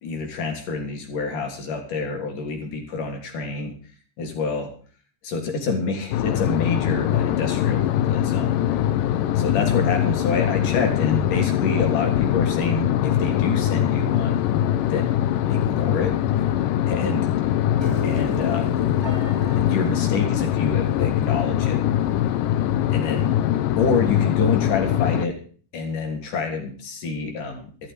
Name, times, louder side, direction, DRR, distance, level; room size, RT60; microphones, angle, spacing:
voice 1, 0.0-3.7 4.2-4.7 5.2-8.6 9.4-14.4 14.9-15.1 15.5-16.1 16.9-17.3 18.0-18.7 19.6-21.8 22.9-23.4 23.8-25.3 25.7-27.7, left 4 dB, 50° left, 3 dB, 4.5 m, -27 dB
sound 1, 6.1-25.3, left 11 dB, 80° left, 1.9 m, -22 dB
Piano, 17.8-24.0, equal, 45° right, 0.3 m, -38 dB
14.5 x 14.0 x 5.0 m, 0.43 s
omnidirectional pair, 5.0 m